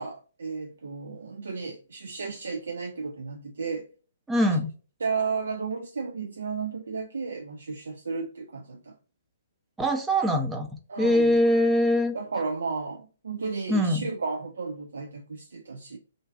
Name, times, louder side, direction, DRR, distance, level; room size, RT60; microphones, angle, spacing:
voice 1, 0.0-3.9 5.0-9.0 10.9-11.4 12.1-16.0, right 4 dB, 70° right, 0.3 m, -33 dB
voice 2, 4.3-4.7 9.8-10.7 11.0-12.1 13.7-14.1, equal, 10° right, 0.5 m, -22 dB
2.5 x 2.2 x 2.3 m
figure-of-eight pair, 125°, 0 cm